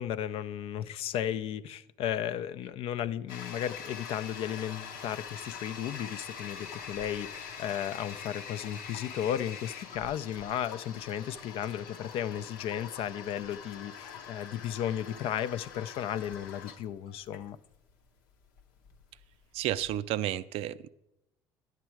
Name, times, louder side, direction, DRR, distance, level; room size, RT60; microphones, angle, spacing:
voice 1, 0.0-17.6, left 10 dB, 65° left, 0.5 m, -34 dB
Toilet flush, 3.3-20.0, left 7 dB, 85° left, 0.8 m, -44 dB
voice 2, 19.5-20.9, right 13 dB, 65° right, 0.4 m, -31 dB
10.5 x 7.5 x 4.6 m
hypercardioid pair, 65°, 11 cm